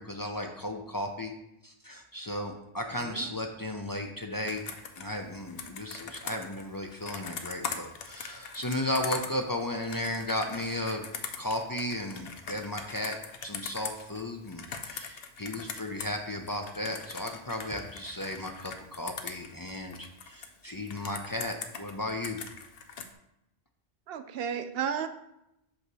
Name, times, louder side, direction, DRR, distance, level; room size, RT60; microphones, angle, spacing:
voice 1, 0.0-1.3 1.6-4.6 5.0-11.0 11.4-13.2 13.4-22.4, left 1 dB, 30° left, 3 dB, 0.4 m, -35 dB
Computer keyboard, 4.5-16.2 16.5-20.5 20.9-23.1, left 6 dB, 70° left, 0.8 m, -41 dB
voice 2, 24.1-25.1, right 8 dB, 70° right, 10 dB, 0.8 m, -33 dB
8.1 x 2.8 x 6.0 m, 0.86 s
omnidirectional pair, 1.0 m